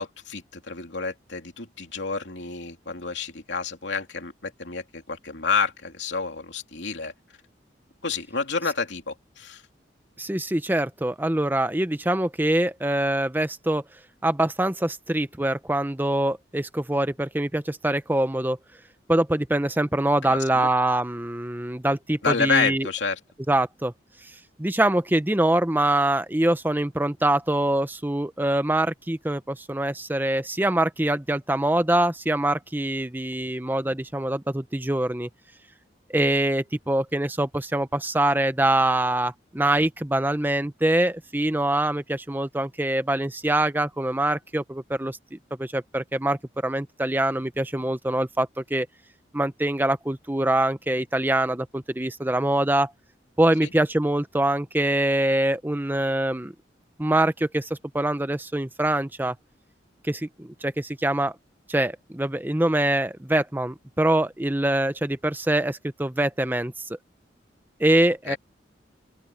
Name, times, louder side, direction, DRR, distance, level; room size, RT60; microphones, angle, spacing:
voice 1, 0.0-7.1 8.0-9.6 20.3-20.7 22.2-23.2 53.6-53.7 68.3-68.4, left 5 dB, 80° left, 2.9 m, -29 dB
voice 2, 10.2-13.8 14.2-18.6 19.1-22.9 23.5-23.9 24.6-35.3 36.1-48.9 49.3-52.9 53.4-56.5 57.0-59.3 60.1-61.3 61.7-66.7 67.8-68.4, right 1 dB, 10° right, 0.8 m, -24 dB
open air
head